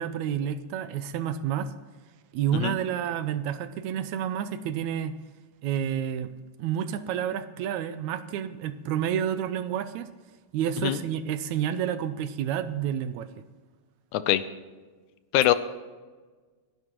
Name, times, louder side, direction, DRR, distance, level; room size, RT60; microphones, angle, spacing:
voice 1, 0.0-1.7 2.3-5.1 5.6-6.3 6.6-10.1 10.5-13.3, right 9 dB, 75° right, 12 dB, 1.9 m, -29 dB
voice 2, 2.5-2.7 10.8-11.0 14.1-14.4 15.3-15.5, left 13 dB, 85° left, 13 dB, 2.1 m, -22 dB
27.0 x 11.0 x 3.1 m, 1.4 s
omnidirectional pair, 3.5 m